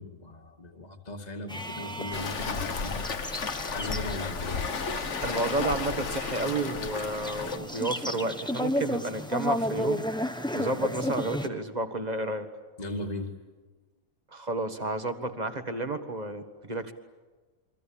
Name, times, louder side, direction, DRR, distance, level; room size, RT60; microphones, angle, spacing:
voice 1, 0.0-3.1 3.6-4.7 12.8-13.3, left 2 dB, 30° left, 3 dB, 2.4 m, -37 dB
sound 1, 1.5-11.5, left 1 dB, 5° left, 1.2 m, -34 dB
Waves surf, 2.1-7.6, left 5 dB, 60° left, 1.6 m, -33 dB
voice 2, 5.2-10.1 10.5-12.5 14.3-16.9, right 2 dB, 30° right, 8 dB, 1.9 m, -31 dB
28.5 x 24.0 x 8.8 m, 1.3 s
omnidirectional pair, 1.4 m